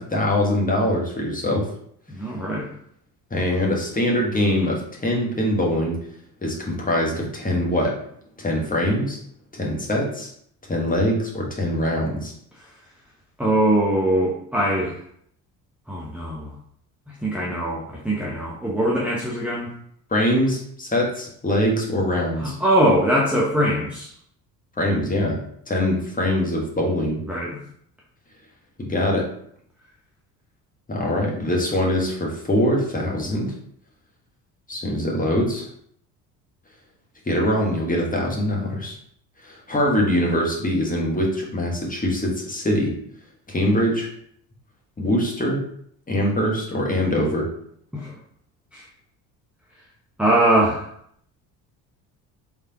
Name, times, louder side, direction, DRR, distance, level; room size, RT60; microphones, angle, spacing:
voice 1, 0.0-1.7 3.3-6.0 6.4-7.9 8.4-9.2 9.5-10.3 10.7-12.3 20.1-22.5 24.8-25.4 25.7-27.2 28.8-29.3 30.9-33.5 34.7-35.7 37.3-38.9 39.4-42.9 43.5-44.1 45.0-45.6 46.1-47.5, left 1 dB, 15° left, -2 dB, 1.3 m, -23 dB
voice 2, 2.1-2.7 13.4-14.9 15.9-16.5 17.2-19.7 22.4-24.1 27.3-27.6 47.9-48.1 48.7-48.9 50.2-50.9, right 1 dB, 5° right, -5 dB, 0.8 m, -22 dB
3.4 x 3.2 x 2.9 m, 0.67 s
hypercardioid pair, 55°, 47 cm